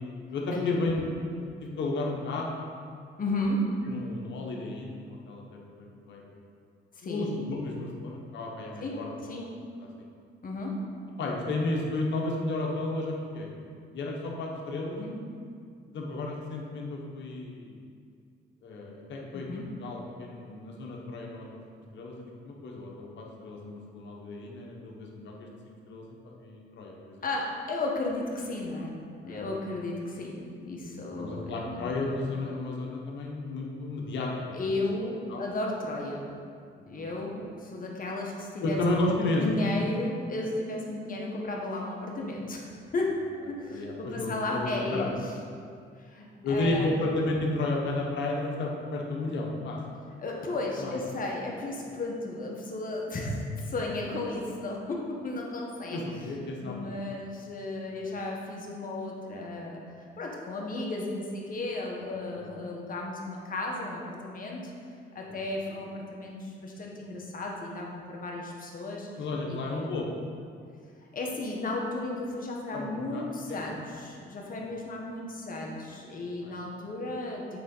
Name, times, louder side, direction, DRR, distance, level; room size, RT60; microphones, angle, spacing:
voice 1, 0.0-2.5 3.8-6.2 7.0-9.5 11.2-13.5 13.9-15.0 15.9-17.8 18.6-21.6 21.9-27.2 29.2-29.4 31.2-34.3 35.3-35.4 36.9-37.0 38.6-39.7 43.7-45.1 46.4-49.8 50.8-50.9 55.9-57.1 58.0-58.1 62.3-62.5 65.2-65.3 69.2-70.1 72.7-73.2 73.5-73.6 74.7-74.8 76.4-76.5, left 2 dB, 65° left, -1 dB, 1.3 m, -33 dB
voice 2, 3.2-3.7 6.9-7.2 8.8-9.4 10.4-10.8 15.0-15.2 19.3-19.6 27.2-28.9 29.2-31.9 34.5-36.2 36.9-38.8 39.1-43.2 43.5-45.3 46.0-46.9 50.2-56.0 56.6-64.7 65.1-69.1 69.5-69.6 69.8-69.9 71.1-77.6, left 2 dB, 45° left, -1 dB, 1.5 m, -34 dB
8.5 x 3.9 x 5.6 m, 2.3 s
cardioid pair, 90°, 20 cm